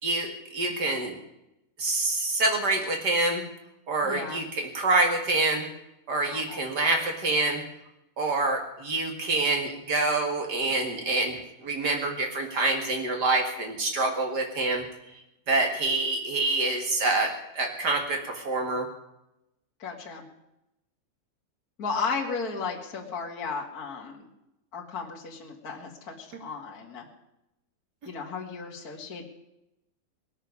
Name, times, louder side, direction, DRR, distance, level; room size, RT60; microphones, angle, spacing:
voice 1, 0.0-1.2 1.8-3.4 3.9-5.6 6.1-7.6 8.2-14.8 15.5-18.8, right 2 dB, 65° right, 3 dB, 1.0 m, -26 dB
voice 2, 4.0-4.4 6.2-6.6 19.8-20.2 21.8-24.3 24.7-27.0 28.0-29.2, left 5 dB, 35° left, -2 dB, 1.6 m, -34 dB
20.5 x 6.9 x 9.7 m, 0.87 s
omnidirectional pair, 5.3 m